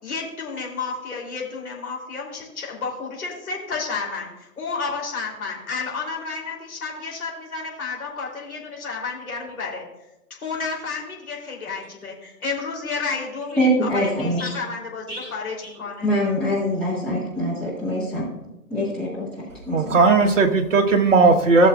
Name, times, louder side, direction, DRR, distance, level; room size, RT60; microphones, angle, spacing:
voice 1, 0.0-9.8 10.3-16.1, left 4 dB, 60° left, -2 dB, 3.2 m, -31 dB
voice 2, 13.6-14.5 15.1-15.3 16.0-18.2 18.7-19.3 19.7-20.0, equal, ahead, -10 dB, 1.6 m, -23 dB
voice 3, 19.7-21.7, right 3 dB, 50° right, 4 dB, 1.2 m, -16 dB
16.5 x 7.0 x 2.4 m, 0.95 s
figure-of-eight pair, 150°, 47 cm